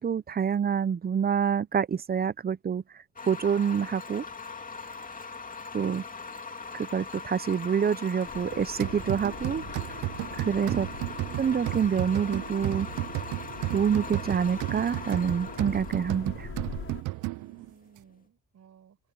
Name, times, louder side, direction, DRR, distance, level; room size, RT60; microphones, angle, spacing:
voice 1, 0.0-2.8 3.3-4.2 5.7-6.0 6.7-9.6 10.5-10.9 11.4-12.9 13.7-16.5, right 7 dB, 30° right, 0.7 m, -27 dB
sound 1, 3.2-18.1, left 4 dB, 25° left, 2.5 m, -41 dB
sound 2, 8.2-17.0, left 6 dB, 45° left, 6.3 m, -44 dB
sound 3, 8.8-17.7, right 21 dB, 90° right, 0.5 m, -34 dB
voice 2, 10.4-10.7 17.1-19.0, right 8 dB, 60° right, 7.4 m, -56 dB
cardioid pair, 90°, 30 cm